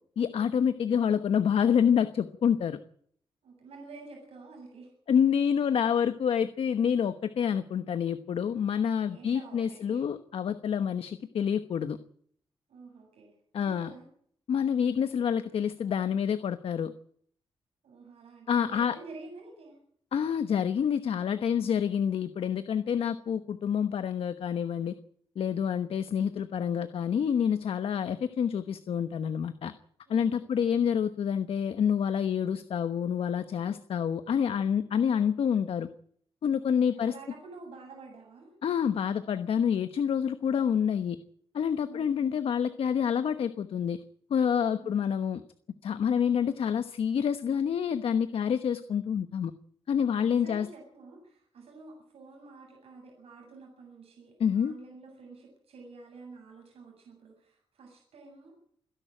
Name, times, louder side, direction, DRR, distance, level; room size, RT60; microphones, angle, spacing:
voice 1, 0.2-2.8 5.1-12.0 13.5-13.9 14.5-16.9 18.5-18.9 20.1-24.9 25.4-29.7 30.1-35.9 36.4-37.1 38.6-41.2 41.5-44.0 44.3-45.4 45.8-49.5 49.9-50.7 54.4-54.7, left 8 dB, 70° left, 11 dB, 1.1 m, -27 dB
voice 2, 3.4-4.9 9.1-10.1 12.7-14.1 17.8-19.8 30.1-30.7 36.6-38.5 41.7-42.4 44.7-45.0 49.9-58.6, right 3 dB, 85° right, 0 dB, 7.8 m, -49 dB
28.5 x 11.0 x 9.0 m, 0.63 s
wide cardioid pair, 135°, 10 cm